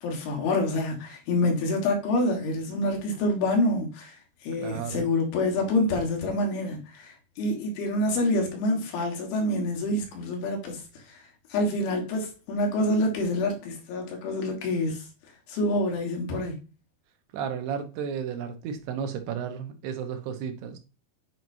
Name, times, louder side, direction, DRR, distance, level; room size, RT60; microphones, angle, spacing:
voice 1, 0.0-4.2 4.4-10.8 11.1-15.0 15.5-16.6, left 1 dB, 75° left, 3.5 m, -27 dB
voice 2, 4.6-5.1 17.3-20.8, right 7 dB, 90° right, 3.1 m, -33 dB
8.9 x 4.6 x 2.7 m
omnidirectional pair, 4.6 m